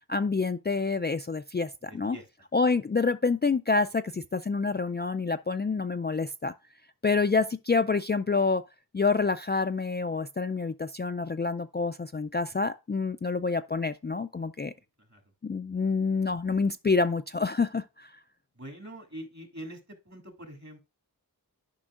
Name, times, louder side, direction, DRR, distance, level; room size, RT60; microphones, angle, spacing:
voice 1, 0.1-2.2 2.5-6.5 7.0-8.6 8.9-14.7 15.4-18.1, left 4 dB, 30° left, 0.4 m, -27 dB
voice 2, 1.9-2.5 14.8-15.2 18.5-20.8, right 1 dB, 45° right, 2.5 m, -45 dB
12.5 x 5.3 x 2.4 m
wide cardioid pair, 45°, 38 cm